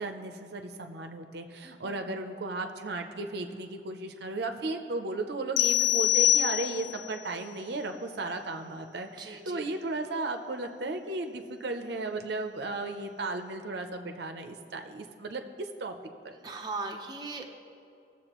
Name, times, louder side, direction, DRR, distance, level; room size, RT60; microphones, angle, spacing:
voice 1, 0.0-15.9 16.2-16.3, right 2 dB, 60° right, 5 dB, 0.6 m, -35 dB
voice 2, 1.6-2.0 9.1-9.7 16.4-17.5, right 3 dB, 20° right, 1 dB, 0.6 m, -39 dB
sound 1, 5.6-7.1, left 12 dB, 70° left, 0.4 m, -24 dB
18.0 x 7.2 x 3.0 m, 2.6 s
head